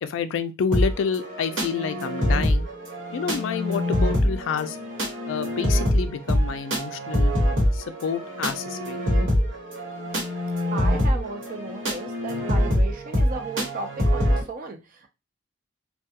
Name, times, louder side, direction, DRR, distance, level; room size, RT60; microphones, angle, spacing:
voice 1, 0.0-2.7 3.1-4.8 5.3-7.3 7.7-9.0 12.3-12.5, left 6 dB, 70° left, 0.3 m, -29 dB
sound 1, 0.7-14.4, equal, 70° right, 1.2 m, -24 dB
voice 2, 10.7-15.1, right 3 dB, 45° right, 0.5 m, -35 dB
2.3 x 2.2 x 2.7 m
head